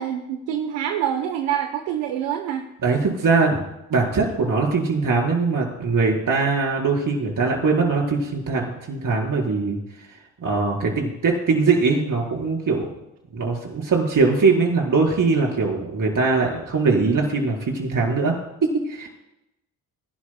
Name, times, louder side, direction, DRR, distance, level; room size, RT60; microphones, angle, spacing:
voice 1, 0.0-2.6, right 10 dB, 80° right, 6 dB, 1.1 m, -26 dB
voice 2, 2.8-3.6 3.9-9.8 10.4-12.9 13.3-19.1, right 4 dB, 50° right, 0 dB, 4.5 m, -21 dB
25.0 x 11.5 x 2.2 m, 0.89 s
supercardioid pair, 55°, 41 cm